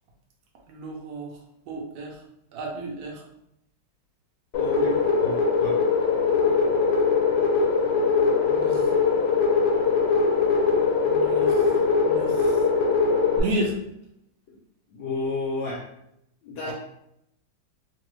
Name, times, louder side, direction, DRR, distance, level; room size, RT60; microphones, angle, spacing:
voice 1, 0.7-1.3 1.7-2.2 2.5-3.2 4.7-5.0 8.4-8.9 11.0-11.7 12.0-12.6 13.4-13.8 16.6-16.7, right 1 dB, 70° right, -1 dB, 0.8 m, -32 dB
sound 1, 4.5-13.4, left 5 dB, 90° left, 1.5 m, -21 dB
voice 2, 4.5-5.0 5.2-5.8 14.5-14.6 14.9-15.8 16.4-16.7, left 3 dB, 75° left, -3 dB, 1.1 m, -31 dB
3.2 x 2.4 x 3.0 m, 0.78 s
omnidirectional pair, 2.4 m